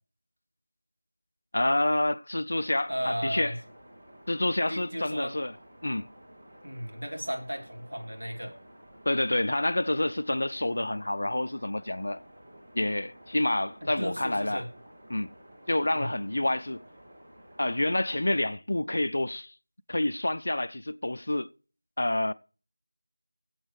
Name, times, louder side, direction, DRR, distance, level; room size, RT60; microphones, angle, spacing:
voice 1, 1.5-3.5 4.3-5.5 5.8-6.1 9.1-12.2 12.8-14.6 15.1-15.3 15.7-16.8 17.6-19.5 19.9-21.5 22.0-22.3, left 1 dB, 50° left, 0.5 m, -28 dB
sound 1, 2.5-18.5, equal, 30° right, 2.3 m, -53 dB
voice 2, 2.9-3.6 4.7-5.3 6.6-8.6 13.8-14.7 15.9-16.1, equal, 65° right, 2.7 m, -35 dB
18.5 x 7.9 x 3.2 m
figure-of-eight pair, 170°, 0 cm